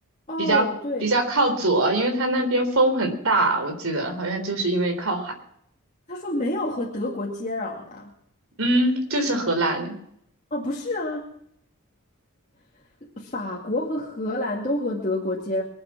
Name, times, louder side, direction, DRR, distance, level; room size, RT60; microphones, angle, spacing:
voice 1, 0.3-1.0 6.1-8.1 10.5-11.3 13.0-15.6, left 1 dB, 35° left, -3 dB, 2.3 m, -28 dB
voice 2, 1.0-5.3 8.6-10.0, right 2 dB, 70° right, 5 dB, 3.7 m, -22 dB
23.5 x 8.7 x 6.1 m, 0.70 s
head